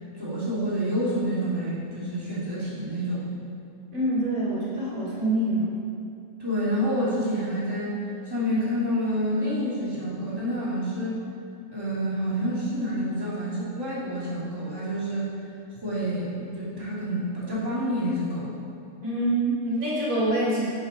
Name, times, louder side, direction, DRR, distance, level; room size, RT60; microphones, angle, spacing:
voice 1, 0.1-3.3 6.4-8.0 8.3-11.2 11.7-15.3 15.7-18.5, equal, 15° right, -9 dB, 2.5 m, -28 dB
voice 2, 3.9-5.8 19.0-20.7, right 1 dB, 85° right, -8 dB, 3.1 m, -25 dB
11.0 x 7.9 x 4.1 m, 2.6 s
omnidirectional pair, 1.4 m